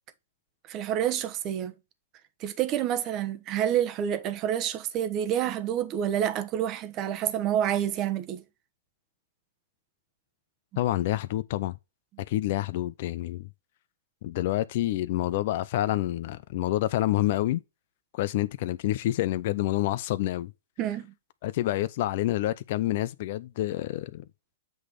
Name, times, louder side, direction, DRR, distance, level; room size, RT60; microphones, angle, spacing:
voice 1, 0.7-1.7 2.4-8.4 20.8-21.1, right 10 dB, 30° right, 1.0 m, -28 dB
voice 2, 10.8-11.8 12.3-13.5 14.2-17.6 18.1-20.5 21.4-24.2, left 15 dB, 50° left, 0.5 m, -28 dB
7.9 x 3.2 x 5.1 m
hypercardioid pair, 135°, 0 cm